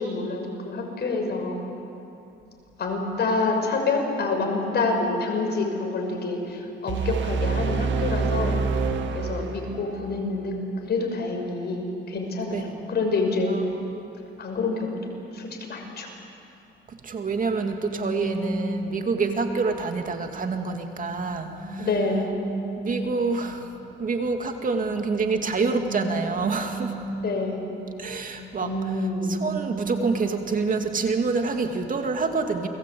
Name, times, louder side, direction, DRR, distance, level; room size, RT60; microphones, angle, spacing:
voice 1, 0.0-1.6 2.8-8.6 9.1-10.6 10.8-13.5 14.4-16.1 21.8-22.3 27.2-27.7 28.6-29.4, left 3 dB, 55° left, 2 dB, 6.0 m, -27 dB
sound 1, 6.9-9.9, right 5 dB, 70° right, 2.1 m, -26 dB
voice 2, 16.9-21.9 22.8-23.7 24.0-27.0 28.0-28.7 29.3-32.7, right 4 dB, 45° right, 5 dB, 2.5 m, -27 dB
sound 2, 17.5-19.7 20.4-23.5 24.6-27.6 28.0-31.0, right 2 dB, 15° right, 4.1 m, -35 dB
29.0 x 21.0 x 8.7 m, 2.9 s
cardioid pair, 90°, 20 cm